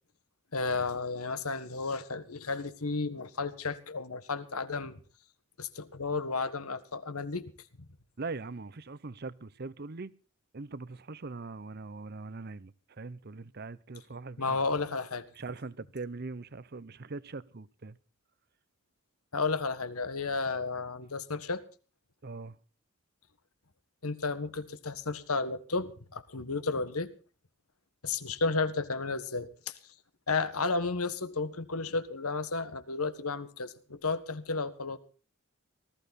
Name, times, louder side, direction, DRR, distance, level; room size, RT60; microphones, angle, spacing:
voice 1, 0.5-5.0 5.6-7.5 14.4-15.3 19.3-21.6 24.0-27.1 28.0-29.8 30.3-35.0, left 4 dB, 80° left, 1.6 m, -33 dB
voice 2, 8.2-10.1 10.5-14.6 15.3-18.0 22.2-22.6, right 3 dB, 45° right, 0.7 m, -41 dB
19.0 x 14.5 x 4.1 m
head